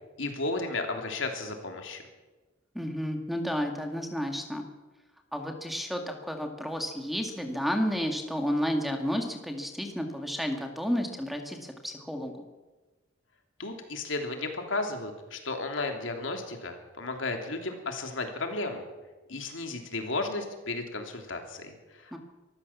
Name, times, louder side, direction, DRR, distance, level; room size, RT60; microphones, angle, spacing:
voice 1, 0.2-2.0 13.6-18.9 19.3-22.2, left 3 dB, 75° left, 4 dB, 3.1 m, -34 dB
voice 2, 2.7-4.7 5.3-12.5 22.1-22.2, equal, ahead, 4 dB, 2.0 m, -31 dB
24.0 x 14.5 x 7.3 m, 1.2 s
head